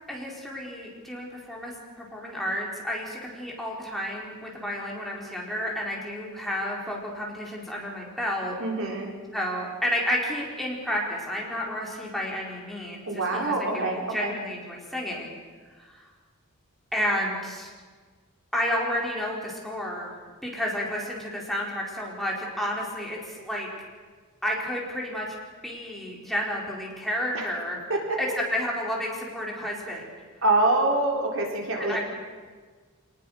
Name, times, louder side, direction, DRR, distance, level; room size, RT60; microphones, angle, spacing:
voice 1, 0.1-8.6 9.3-15.4 15.8-16.1 16.9-17.7 18.5-20.1 20.4-23.7 24.4-25.3 25.6-27.8 28.2-30.1 31.8-32.0, equal, ahead, -3 dB, 4.5 m, -31 dB
voice 2, 8.6-9.1 13.1-14.3 27.3-27.5 27.9-28.2 30.4-32.0, right 2 dB, 65° right, 0 dB, 4.1 m, -25 dB
26.5 x 19.5 x 6.6 m, 1.5 s
head